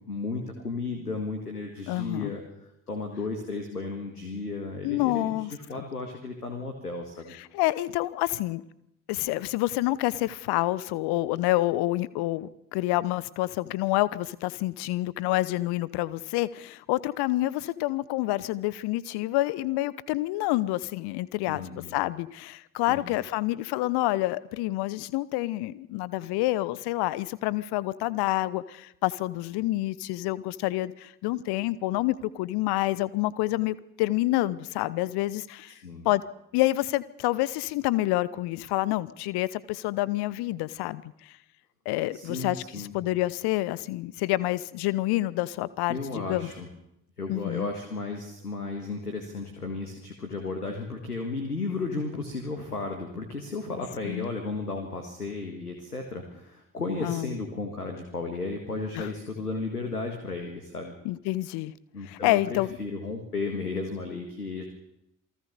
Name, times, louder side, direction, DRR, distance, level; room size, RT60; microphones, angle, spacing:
voice 1, 0.1-2.4 2.9-7.3 21.5-22.0 22.9-23.1 35.7-36.1 42.1-42.9 45.9-46.7 47.2-60.9 61.9-64.7, left 3 dB, 85° left, 4 dB, 1.9 m, -34 dB
voice 2, 1.9-2.3 4.8-5.9 7.4-8.6 9.1-21.6 21.9-35.7 36.0-36.2 36.5-41.0 41.8-42.6 42.9-46.5 47.3-47.7 54.0-54.3 57.0-57.3 58.9-59.1 61.0-61.7 62.0-62.8, left 17 dB, 60° left, 19 dB, 1.0 m, -28 dB
27.5 x 19.5 x 6.8 m, 0.83 s
figure-of-eight pair, 45°, 45 cm